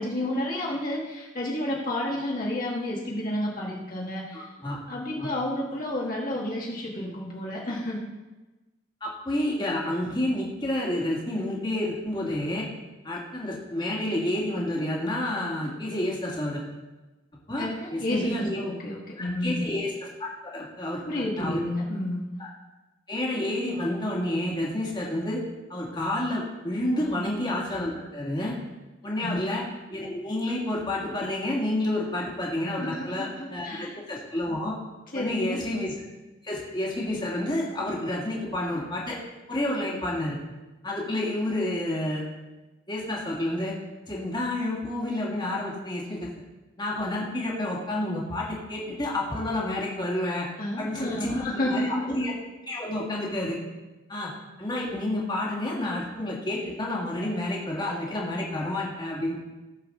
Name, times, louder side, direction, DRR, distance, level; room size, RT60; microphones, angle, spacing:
voice 1, 0.0-4.5 4.9-8.0 17.6-19.7 21.1-22.3 27.0-27.3 27.7-27.8 29.1-29.4 32.8-34.0 35.1-35.7 50.6-52.0, left 1 dB, 45° left, -4 dB, 1.7 m, -31 dB
voice 2, 4.3-4.8 5.1-5.3 9.0-12.7 13.0-16.6 17.5-18.7 19.2-21.6 22.4-22.5 23.1-25.4 25.7-28.5 29.0-29.6 29.9-34.8 35.1-35.9 36.4-39.2 39.5-40.4 40.8-42.2 42.9-43.8 44.1-46.3 46.8-50.5 50.8-52.3 52.7-53.6 54.1-54.3 54.6-59.4, left 1 dB, 25° left, -4 dB, 2.0 m, -29 dB
15.5 x 7.1 x 3.8 m, 1.1 s
head